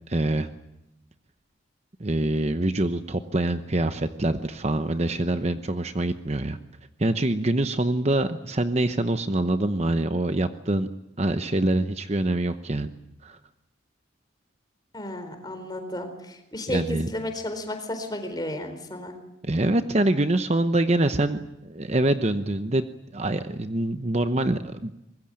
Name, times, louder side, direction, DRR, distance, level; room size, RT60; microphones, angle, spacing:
voice 1, 0.1-0.5 2.0-6.6 7.0-10.9 11.2-12.9 13.2-13.4 16.7-17.1 19.4-22.9 23.1-25.0, right 1 dB, 35° right, 9 dB, 0.9 m, -25 dB
voice 2, 14.9-19.1, left 1 dB, 20° left, 7 dB, 4.2 m, -33 dB
24.5 x 21.0 x 9.0 m, 0.88 s
head